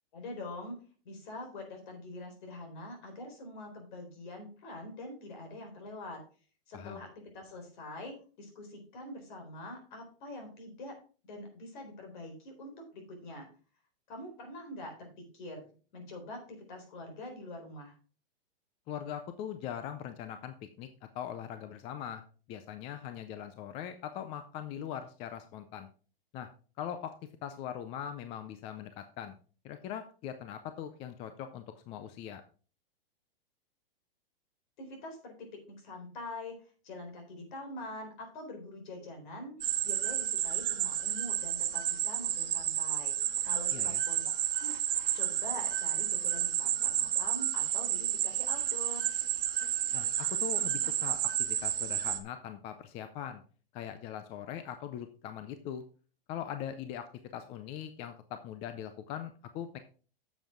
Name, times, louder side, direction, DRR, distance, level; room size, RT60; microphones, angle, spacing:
voice 1, 0.1-0.8 1.0-6.2 6.7-11.0 11.2-13.5 14.1-15.7 15.9-17.9 34.8-39.5 39.8-44.3 44.6-44.7 45.1-49.1, left 1 dB, 55° left, 4 dB, 4.1 m, -45 dB
voice 2, 18.9-20.9 21.1-22.2 22.5-25.9 26.3-26.5 26.8-27.1 27.4-29.3 29.6-32.4 43.7-44.0 49.9-53.4 53.7-55.8 56.3-59.8, left 9 dB, 20° left, 9 dB, 0.4 m, -41 dB
sound 1, 39.6-52.2, right 11 dB, 65° right, 1.3 m, -31 dB
9.0 x 7.3 x 3.7 m, 0.38 s
hypercardioid pair, 145°, 30 cm